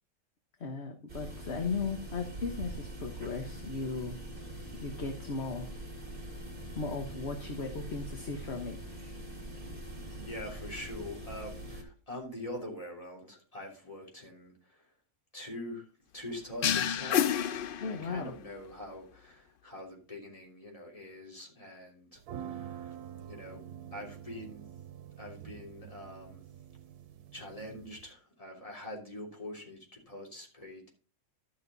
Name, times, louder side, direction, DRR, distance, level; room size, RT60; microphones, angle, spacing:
voice 1, 0.6-4.2 4.8-5.7 6.3-6.4 6.7-9.2 17.8-18.3, left 4 dB, 50° left, 4 dB, 1.4 m, -37 dB
sound 1, 1.1-11.8, right 1 dB, 35° right, 2.3 m, -43 dB
voice 2, 10.1-14.9 15.3-15.9 16.1-17.3 17.8-23.0 23.3-23.6 23.9-24.7 25.2-26.5 27.3-31.0, left 1 dB, 20° left, -1 dB, 3.3 m, -44 dB
sound 2, 16.6-18.4, left 9 dB, 70° left, 0.5 m, -29 dB
sound 3, 22.2-28.1, right 9 dB, 90° right, 1.3 m, -46 dB
12.0 x 6.6 x 4.0 m, 0.35 s
omnidirectional pair, 1.6 m